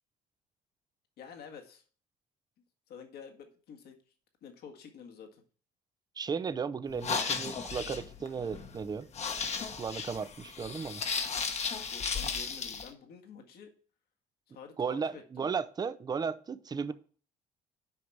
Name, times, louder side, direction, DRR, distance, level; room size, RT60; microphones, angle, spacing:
voice 1, 1.2-1.8 2.9-4.0 4.4-5.4 11.9-13.7 14.5-15.5, left 6 dB, 70° left, 1.8 m, -49 dB
voice 2, 6.2-9.1 9.8-11.0 14.8-16.9, right 5 dB, 25° right, 0.5 m, -35 dB
sound 1, 6.9-12.9, left 5 dB, 40° left, 1.1 m, -35 dB
7.9 x 5.2 x 4.6 m
cardioid pair, 110°, 17 cm